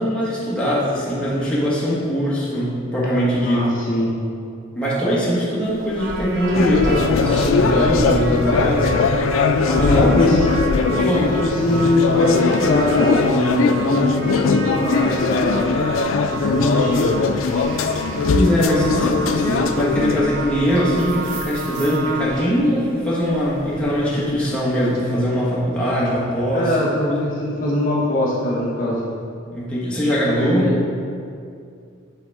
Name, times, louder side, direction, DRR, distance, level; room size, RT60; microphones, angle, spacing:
voice 1, 0.0-3.7 4.7-8.9 9.6-10.5 10.9-11.3 17.7-18.0 18.3-26.8 29.5-30.7, equal, 5° left, -8 dB, 1.4 m, -21 dB
voice 2, 3.4-4.1 9.8-10.4 11.4-15.9 16.2-17.2 26.5-29.0 30.5-30.8, left 1 dB, 45° left, -6 dB, 0.9 m, -21 dB
sound 1, 5.6-25.2, equal, 80° right, 1.0 m, -37 dB
sound 2, 6.0-22.2, right 4 dB, 60° right, 1.0 m, -33 dB
sound 3, 6.5-20.2, left 4 dB, 75° left, 0.4 m, -20 dB
7.9 x 4.1 x 3.5 m, 2.3 s
head